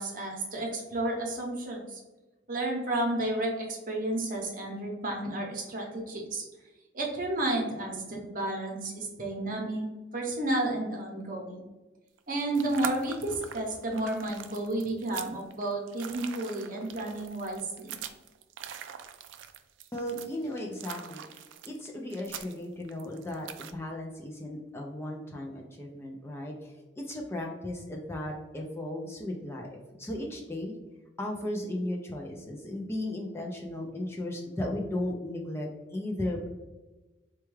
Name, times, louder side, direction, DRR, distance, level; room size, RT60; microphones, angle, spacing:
voice 1, 0.0-2.0 2.5-6.4 6.9-9.9 10.1-11.6 12.3-17.9, right 1 dB, 45° right, 0 dB, 0.8 m, -32 dB
sound 1, 12.2-23.7, right 8 dB, 70° right, 0.3 m, -43 dB
voice 2, 19.9-21.2 21.6-30.8 31.2-36.5, left 1 dB, 15° left, -1 dB, 0.3 m, -36 dB
4.4 x 2.3 x 3.1 m, 1.1 s
head